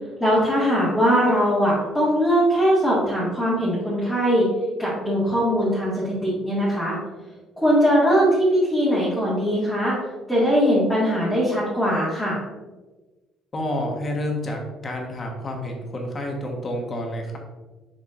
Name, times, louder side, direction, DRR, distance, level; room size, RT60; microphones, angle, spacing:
voice 1, 0.2-4.5 4.8-7.0 7.6-10.0 10.3-12.4, equal, 5° left, -10 dB, 1.9 m, -20 dB
voice 2, 13.5-17.4, left 1 dB, 25° left, 1 dB, 1.2 m, -29 dB
7.0 x 5.9 x 2.5 m, 1.2 s
cardioid pair, 155°, 0 cm